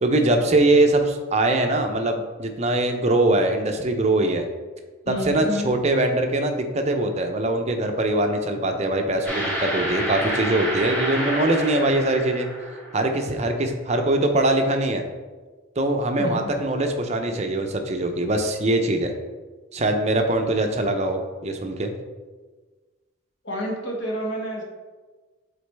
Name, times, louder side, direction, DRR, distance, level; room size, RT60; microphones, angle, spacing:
voice 1, 0.0-4.4 5.1-12.5 12.9-15.0 15.8-19.1 19.7-21.9, right 2 dB, 35° right, 5 dB, 0.6 m, -22 dB
voice 2, 5.0-5.7 16.2-16.5 23.4-24.6, equal, 60° left, -2 dB, 1.5 m, -29 dB
sound 1, 9.2-13.1, right 1 dB, 10° left, 1.8 m, -28 dB
8.2 x 4.0 x 3.4 m, 1.3 s
head